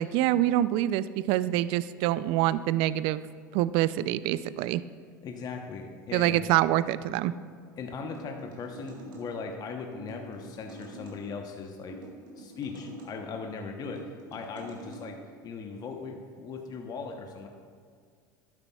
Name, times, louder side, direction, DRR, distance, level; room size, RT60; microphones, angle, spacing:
voice 1, 0.0-3.2 3.5-4.8 6.1-7.3, right 14 dB, 60° right, 16 dB, 0.3 m, -26 dB
voice 2, 5.2-6.4 7.8-12.0 12.4-17.5, left 4 dB, 40° left, 4 dB, 0.9 m, -39 dB
sound 1, 8.0-9.3 10.0-11.2 11.9-13.1 13.8-15.0, right 1 dB, 85° right, 1.9 m, -45 dB
11.5 x 9.6 x 2.3 m, 2.1 s
hypercardioid pair, 85°, 11 cm